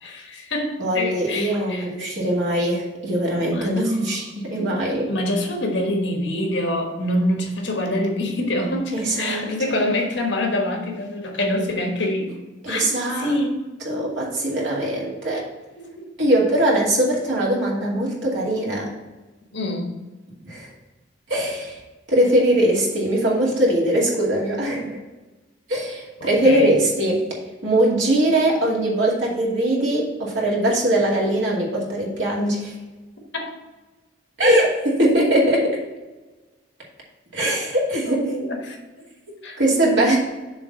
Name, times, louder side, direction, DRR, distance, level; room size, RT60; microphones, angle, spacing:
voice 1, 0.0-1.9 3.5-4.0 5.1-12.3 12.7-13.6 15.8-16.1 19.5-19.9 26.4-26.8 33.3-33.5 38.0-39.1 39.4-40.2, left 1 dB, 75° left, 2 dB, 1.3 m, -26 dB
voice 2, 0.8-5.1 8.9-9.8 12.6-13.4 13.8-15.5 16.2-18.9 20.4-20.7 21.3-21.8 22.1-25.0 25.7-27.3 27.6-32.7 34.4-35.8 37.3-38.2 39.6-40.2, right 1 dB, 80° right, -4 dB, 2.5 m, -21 dB
7.1 x 3.4 x 6.0 m, 1.2 s
head